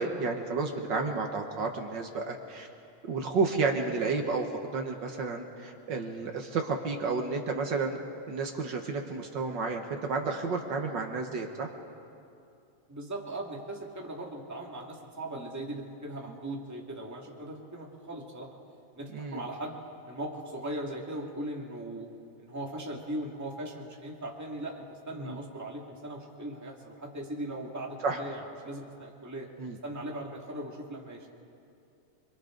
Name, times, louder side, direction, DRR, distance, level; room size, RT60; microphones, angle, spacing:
voice 1, 0.0-2.7 3.0-8.0 8.3-11.7 16.3-16.4 19.1-19.4 25.2-25.4 28.0-28.2 29.6-29.8, right 4 dB, 55° right, 2 dB, 1.2 m, -31 dB
voice 2, 12.9-18.5 18.9-19.7 20.1-22.1 22.4-29.5 29.8-31.3, right 1 dB, 5° right, -1 dB, 1.7 m, -39 dB
30.0 x 23.0 x 3.9 m, 2.6 s
omnidirectional pair, 3.6 m